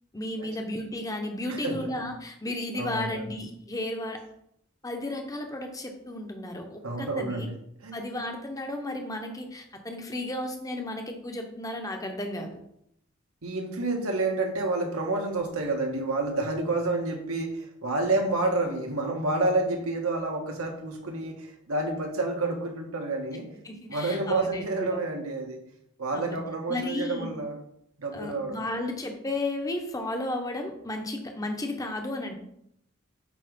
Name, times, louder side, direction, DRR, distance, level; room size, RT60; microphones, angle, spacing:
voice 1, 0.1-4.2 4.8-7.5 7.9-12.5 23.6-25.0 26.1-26.4 26.7-27.3 28.1-32.3, left 1 dB, 15° left, 4 dB, 0.8 m, -33 dB
voice 2, 1.5-1.9 2.7-3.3 6.8-7.6 7.8-8.0 13.4-23.5 23.9-25.6 26.0-27.6 28.0-28.7, right 2 dB, 75° right, 2 dB, 1.3 m, -29 dB
8.4 x 3.1 x 5.2 m, 0.75 s
head